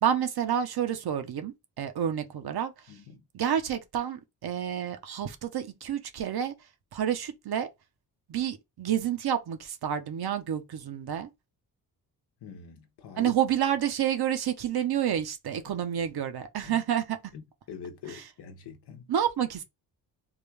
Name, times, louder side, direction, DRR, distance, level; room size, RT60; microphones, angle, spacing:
voice 1, 0.0-2.7 3.3-6.5 6.9-7.7 8.3-11.3 13.2-17.2 19.1-19.6, right 9 dB, 65° right, 0.9 m, -29 dB
voice 2, 2.9-3.2 12.4-13.3 15.7-15.8 16.6-16.8 17.3-17.4 17.7-19.1, left 7 dB, 80° left, 0.9 m, -44 dB
3.7 x 2.3 x 3.3 m
cardioid pair, 90°, 40 cm